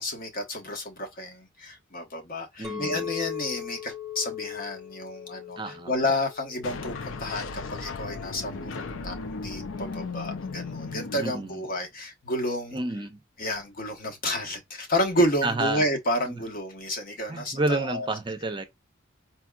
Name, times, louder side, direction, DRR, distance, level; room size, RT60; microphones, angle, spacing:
voice 1, 0.0-12.8 13.4-18.1, left 1 dB, 45° left, 1.1 m, -30 dB
Chink clink, 2.6-7.0 7.5-7.8, left 11 dB, ahead, 1.1 m, -38 dB
voice 2, 2.6-3.1 5.6-5.9 11.2-11.6 12.7-13.2 15.4-15.8 16.3-16.4 17.3-18.6, right 2 dB, 25° right, 0.6 m, -29 dB
sound 1, 6.6-11.8, left 4 dB, 75° left, 0.6 m, -36 dB
4.3 x 2.8 x 2.2 m
head